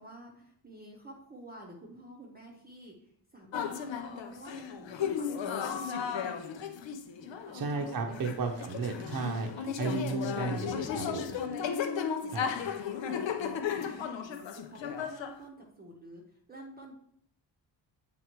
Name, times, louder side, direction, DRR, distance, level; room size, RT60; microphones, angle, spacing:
voice 1, 0.0-6.5 7.2-8.8 11.4-11.7 12.2-12.6 12.9-16.9, right 1 dB, 20° right, -1 dB, 0.8 m, -50 dB
sound 1, 3.5-15.3, left 7 dB, 70° left, 0.7 m, -35 dB
voice 2, 7.5-11.3 12.3-12.5, right 4 dB, 50° right, 2 dB, 0.8 m, -34 dB
8.1 x 3.5 x 4.5 m, 0.68 s
wide cardioid pair, 175°, 46 cm